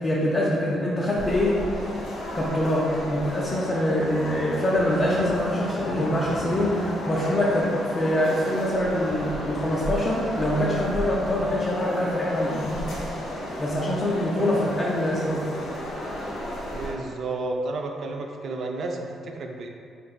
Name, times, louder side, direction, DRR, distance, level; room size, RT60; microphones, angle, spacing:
voice 1, 0.0-1.6 2.3-12.5 13.6-15.4, left 1 dB, 35° left, -5 dB, 0.5 m, -24 dB
sound 1, 1.2-16.9, equal, 85° left, 1.0 m, -33 dB
sound 2, 4.8-7.2 7.5-7.6 8.7-11.8 12.1-12.8, right 2 dB, 15° right, 0.7 m, -37 dB
voice 2, 16.7-19.7, right 2 dB, 60° right, 2 dB, 0.4 m, -31 dB
3.9 x 3.3 x 2.3 m, 2.3 s
cardioid pair, 90°, 0 cm